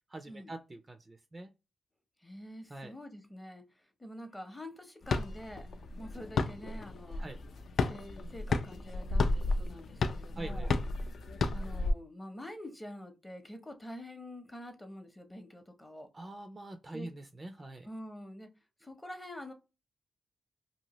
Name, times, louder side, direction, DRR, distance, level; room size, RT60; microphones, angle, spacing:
voice 1, 0.1-1.5 2.7-2.9 7.2-7.4 10.4-10.8 16.1-17.9, right 2 dB, 20° right, 0.3 m, -44 dB
voice 2, 2.2-5.7 6.0-7.2 7.8-10.7 11.5-16.1 16.9-17.1 17.8-18.5 18.8-19.5, left 1 dB, 10° left, 0.7 m, -46 dB
sound 1, 5.0-11.9, left 3 dB, 60° left, 0.3 m, -33 dB
2.8 x 2.6 x 2.8 m
wide cardioid pair, 140°, 0 cm